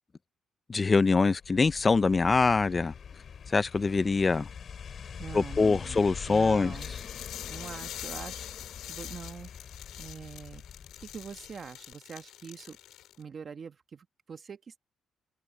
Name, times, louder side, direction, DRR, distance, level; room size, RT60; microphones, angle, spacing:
voice 1, 0.7-2.9 3.5-4.5 5.3-6.7, left 4 dB, 30° left, 0.8 m, -24 dB
sound 1, 1.3-11.7 11.9-12.0, left 7 dB, 55° left, 3.1 m, -44 dB
voice 2, 5.2-6.9 7.5-8.5 8.9-9.5 10.0-10.6 11.1-12.8 13.2-14.8, right 6 dB, 45° right, 1.4 m, -44 dB
sound 2, 6.7-13.2, left 12 dB, 85° left, 2.9 m, -44 dB
open air
cardioid pair, 90°, 0 cm